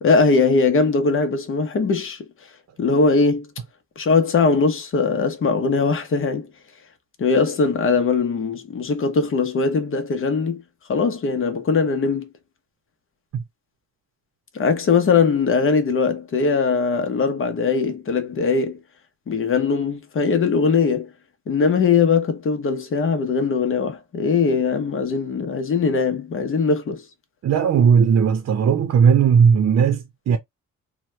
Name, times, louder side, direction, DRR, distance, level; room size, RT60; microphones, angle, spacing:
voice 1, 0.0-2.3 2.8-3.5 4.0-6.5 7.2-10.6 10.9-12.3 14.5-18.8 19.3-21.1 21.5-27.0, left 4 dB, 45° left, 0.9 m, -20 dB
voice 2, 27.4-30.4, right 7 dB, 55° right, 0.7 m, -17 dB
2.9 x 2.2 x 3.1 m
cardioid pair, 90°, 30 cm